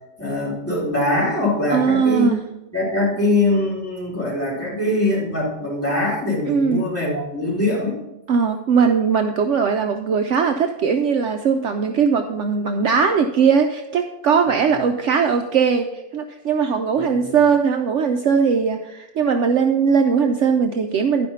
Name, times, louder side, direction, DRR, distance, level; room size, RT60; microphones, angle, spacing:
voice 1, 0.2-2.3 2.7-8.0 14.7-14.8 16.9-17.4, left 2 dB, 5° left, -6 dB, 3.8 m, -22 dB
voice 2, 1.7-2.4 6.5-6.8 8.3-21.3, right 6 dB, 70° right, 5 dB, 0.7 m, -19 dB
11.5 x 5.3 x 5.5 m, 0.97 s
omnidirectional pair, 1.9 m